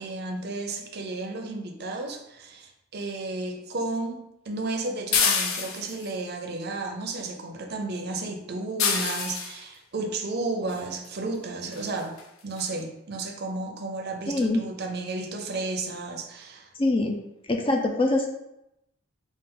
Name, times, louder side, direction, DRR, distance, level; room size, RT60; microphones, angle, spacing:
voice 1, 0.0-12.1 12.4-16.7, right 3 dB, 50° right, 3 dB, 0.6 m, -33 dB
sound 1, 5.1-6.1 8.8-9.6 11.1-11.2 11.7-11.9 12.2-12.3 12.6-12.7, left 6 dB, 80° left, 0.6 m, -26 dB
voice 2, 14.3-14.6 16.8-17.2 17.5-18.3, left 2 dB, 25° left, 3 dB, 0.4 m, -23 dB
5.4 x 2.5 x 3.7 m, 0.86 s
head